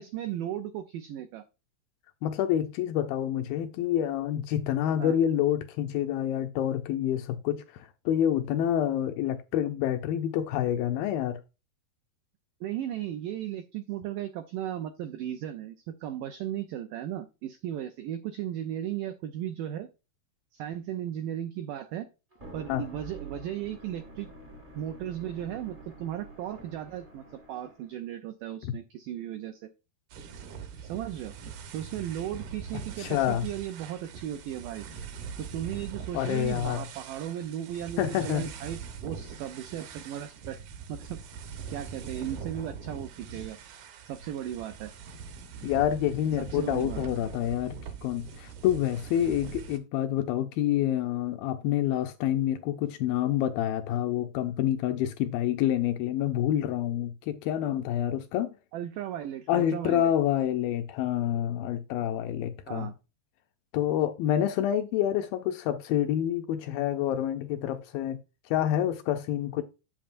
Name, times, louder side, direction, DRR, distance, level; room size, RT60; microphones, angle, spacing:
voice 1, 0.0-1.4 5.0-5.1 12.6-19.9 20.5-22.1 22.5-24.3 24.8-29.7 30.8-31.4 31.7-34.9 35.4-40.6 40.9-41.2 41.7-43.6 44.1-44.9 46.4-47.0 58.7-60.1 62.7-62.9, right 11 dB, 85° right, 1.9 m, -36 dB
voice 2, 2.2-11.4 22.7-22.9 28.6-28.7 33.0-33.5 36.1-36.8 38.0-38.4 45.6-58.5 59.5-62.9 63.7-68.2 68.5-69.6, left 11 dB, 80° left, 2.1 m, -28 dB
sound 1, 22.3-27.9, right 2 dB, 40° right, 0.7 m, -47 dB
sound 2, 30.1-49.8, right 6 dB, 65° right, 2.1 m, -42 dB
8.9 x 7.6 x 2.5 m
omnidirectional pair, 4.5 m